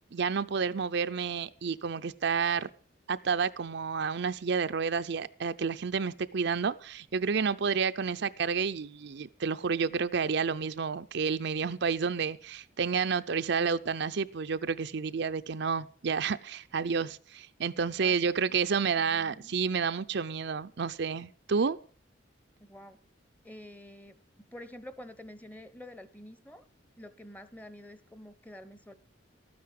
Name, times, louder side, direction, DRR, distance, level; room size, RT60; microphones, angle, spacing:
voice 1, 0.1-2.7 3.1-21.8, right 5 dB, 65° right, 0.6 m, -30 dB
voice 2, 19.0-19.5 22.6-23.0 23.4-24.2 24.5-26.6 27.0-28.9, left 1 dB, 10° left, 1.0 m, -48 dB
13.0 x 9.5 x 7.5 m
head